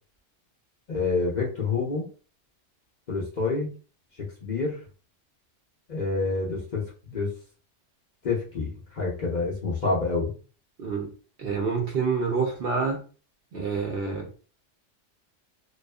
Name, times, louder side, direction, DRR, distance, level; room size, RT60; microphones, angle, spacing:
voice 1, 0.9-2.1 3.1-3.7 4.2-4.8 5.9-7.3 8.2-10.3, left 3 dB, 45° left, -4 dB, 0.6 m, -28 dB
voice 2, 10.8-11.1 11.4-13.0 13.5-14.3, right 5 dB, 60° right, 0 dB, 0.7 m, -27 dB
2.4 x 2.4 x 2.2 m, 0.38 s
omnidirectional pair, 1.3 m